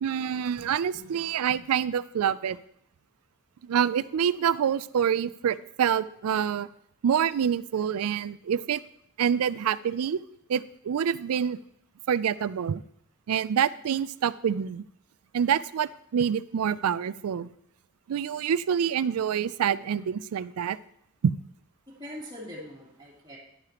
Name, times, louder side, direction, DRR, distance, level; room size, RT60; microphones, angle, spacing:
voice 1, 0.0-2.6 3.6-6.7 7.0-8.8 9.2-10.2 10.5-11.6 12.1-12.8 13.3-14.8 15.3-17.5 18.1-20.8 21.2-21.3, right 8 dB, 80° right, 17 dB, 0.4 m, -26 dB
voice 2, 21.9-23.4, equal, 20° right, -5 dB, 3.1 m, -43 dB
11.0 x 9.7 x 3.0 m, 0.70 s
head